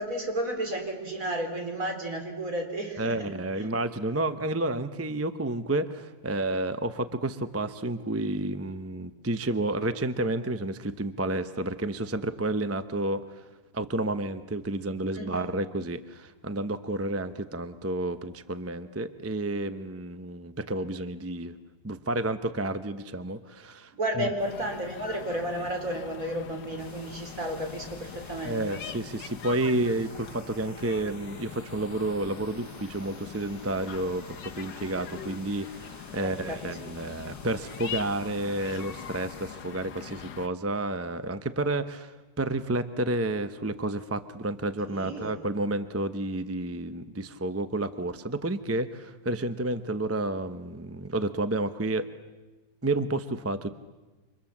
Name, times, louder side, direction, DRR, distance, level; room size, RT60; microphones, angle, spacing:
voice 1, 0.0-3.7 15.1-15.5 23.9-28.7 36.1-36.8 44.9-45.4, right 1 dB, 50° right, 3 dB, 4.3 m, -33 dB
voice 2, 3.0-13.4 13.7-21.5 21.8-24.3 28.4-52.1 52.8-53.7, right 2 dB, 15° right, 10 dB, 0.5 m, -30 dB
sound 1, 24.4-40.5, left 9 dB, 80° left, 1.7 m, -43 dB
sound 2, 26.8-39.5, left 1 dB, 15° left, 4.0 m, -51 dB
29.5 x 26.0 x 7.3 m, 1.2 s
omnidirectional pair, 1.9 m